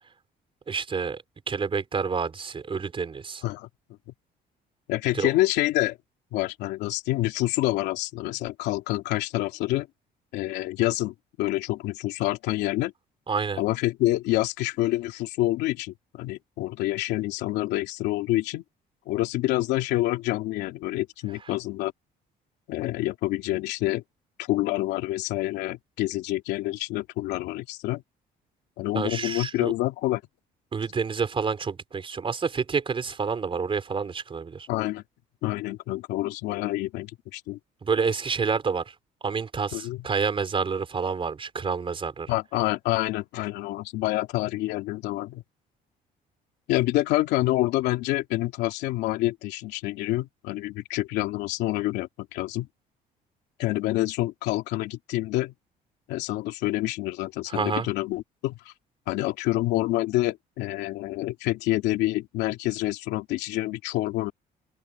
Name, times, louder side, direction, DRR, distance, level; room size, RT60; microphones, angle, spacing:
voice 1, 0.7-3.4 5.1-5.3 13.3-13.6 28.9-29.7 30.7-34.7 37.8-38.9 39.2-42.3 57.5-57.9, right 5 dB, 30° right, 4.4 m, -28 dB
voice 2, 4.9-6.0 6.3-9.9 10.3-12.9 13.6-18.6 19.1-21.9 22.7-24.0 24.4-28.0 28.8-30.2 34.7-35.0 35.4-37.6 39.7-40.0 42.3-45.4 46.7-52.7 53.6-55.5 56.1-58.7 59.1-64.3, left 17 dB, 90° left, 2.9 m, -27 dB
open air
cardioid pair, 110°, 17 cm